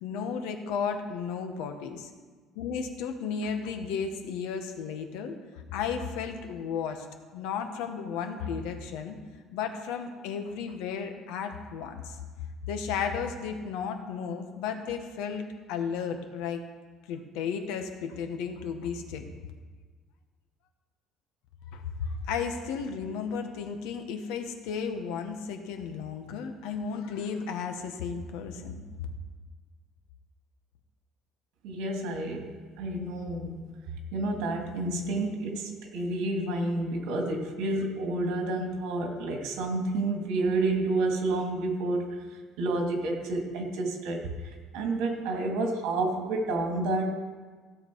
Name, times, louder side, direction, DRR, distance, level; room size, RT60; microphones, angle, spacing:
voice 1, 0.0-2.1 2.5-5.3 5.7-7.1 7.3-9.2 9.5-12.2 12.7-16.6 17.1-19.2 21.7-28.8, left 6 dB, 85° left, 6 dB, 1.3 m, -34 dB
voice 2, 31.6-33.5 34.1-42.2 42.6-47.1, right 2 dB, 75° right, 2 dB, 2.3 m, -30 dB
16.5 x 7.7 x 4.7 m, 1.5 s
cardioid pair, 175°, 0 cm